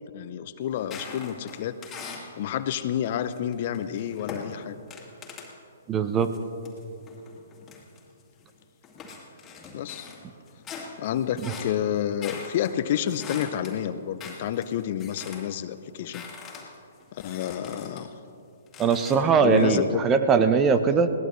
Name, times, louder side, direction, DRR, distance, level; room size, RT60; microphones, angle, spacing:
voice 1, 0.1-1.8 2.4-4.8 9.7-10.1 11.0-16.2 17.1-18.1 19.4-20.0, left 10 dB, 45° left, 12 dB, 0.6 m, -29 dB
sound 1, 0.8-2.4 2.9-5.6 6.2-8.5 8.8-15.6 15.8-18.1 18.7-19.6, left 5 dB, 20° left, 2.2 m, -43 dB
voice 2, 5.9-6.3 11.4-11.5 18.8-21.1, right 5 dB, 20° right, 10 dB, 0.8 m, -21 dB
21.5 x 17.0 x 3.2 m, 2.7 s
hypercardioid pair, 130°, 0 cm